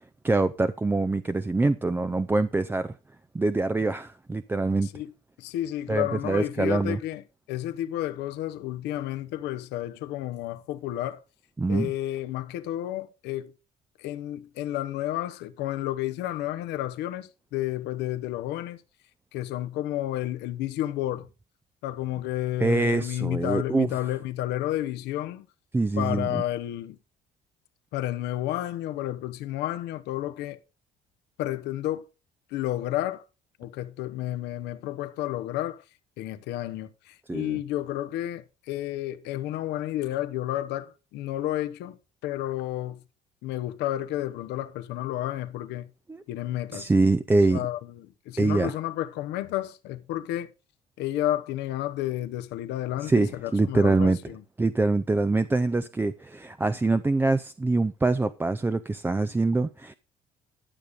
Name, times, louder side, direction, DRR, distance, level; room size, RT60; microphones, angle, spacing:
voice 1, 0.2-3.0 3.3-4.9 5.9-7.0 11.6-11.9 22.6-23.9 25.7-26.4 37.3-37.6 46.1-46.2 46.7-47.6 48.4-48.7 53.0-54.2 54.6-59.9, right 3 dB, 10° right, 0.5 m, -24 dB
voice 2, 5.4-7.2 7.5-11.2 11.7-13.5 14.0-18.8 19.3-21.3 21.8-25.4 26.0-27.0 27.9-30.6 31.4-32.0 32.5-33.2 33.6-35.8 36.2-42.0 42.2-43.0 43.4-45.9 46.3-46.9 47.5-50.5 51.0-54.4, left 13 dB, 85° left, 1.0 m, -31 dB
12.0 x 6.7 x 5.0 m
cardioid pair, 110°, 17 cm